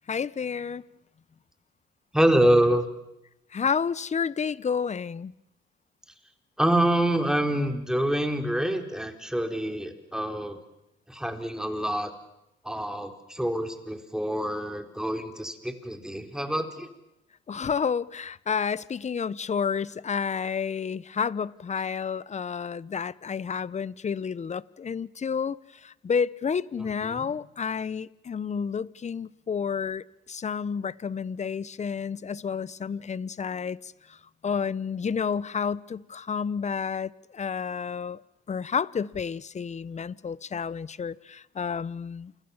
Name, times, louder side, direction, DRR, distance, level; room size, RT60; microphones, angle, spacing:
voice 1, 0.1-0.8 3.5-5.3 17.5-25.6 25.8-33.9 34.4-38.2 38.5-42.3, left 6 dB, 35° left, 0.9 m, -30 dB
voice 2, 2.1-2.9 6.6-10.6 11.1-12.1 12.6-16.9 26.8-27.3, right 1 dB, 5° right, 3.9 m, -26 dB
29.0 x 24.5 x 7.2 m
cardioid pair, 90°, 20 cm